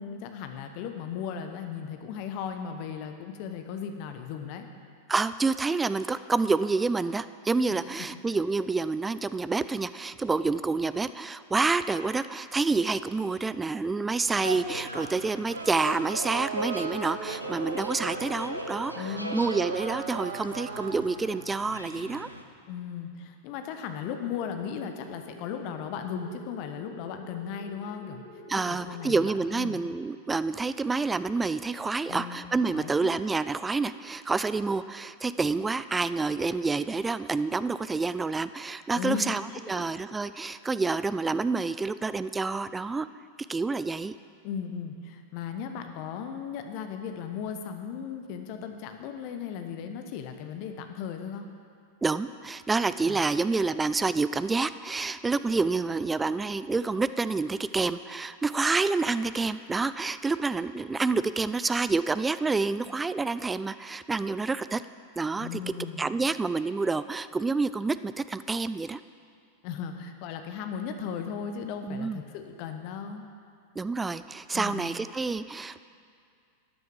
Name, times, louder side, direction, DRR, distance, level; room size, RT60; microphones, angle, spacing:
voice 1, 0.0-4.7 8.0-8.2 19.0-19.4 22.7-29.8 32.1-32.4 32.7-33.1 38.9-39.8 44.4-51.4 53.1-53.2 65.4-66.1 69.6-73.2 74.5-74.9, left 7 dB, 45° left, 6 dB, 1.1 m, -36 dB
voice 2, 5.1-22.3 28.5-39.4 39.7-43.1 43.5-44.1 52.0-64.8 65.2-65.6 66.0-69.0 71.8-72.2 73.8-75.8, right 4 dB, 10° right, 14 dB, 0.3 m, -28 dB
sound 1, 14.2-22.4, equal, 90° right, 0.8 m, -39 dB
sound 2, 15.5-21.0, right 5 dB, 65° right, 1.0 m, -37 dB
sound 3, 24.0-29.0, left 2 dB, 20° left, 2.6 m, -48 dB
13.0 x 9.4 x 4.9 m, 2.3 s
figure-of-eight pair, 90°, 0 cm